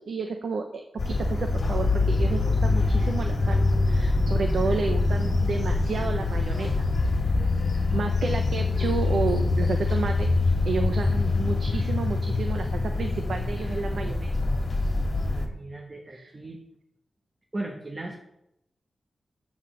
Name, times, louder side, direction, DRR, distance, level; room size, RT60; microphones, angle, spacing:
voice 1, 0.0-3.6 3.9-6.8 7.9-14.3 16.1-16.3, right 4 dB, 80° right, 5 dB, 0.8 m, -31 dB
sound 1, 1.0-15.5, left 3 dB, 45° left, 1.8 m, -24 dB
voice 2, 15.3-16.6 17.5-18.1, right 2 dB, 30° right, 1 dB, 1.2 m, -37 dB
7.3 x 6.8 x 6.3 m, 0.82 s
wide cardioid pair, 90°, 0 cm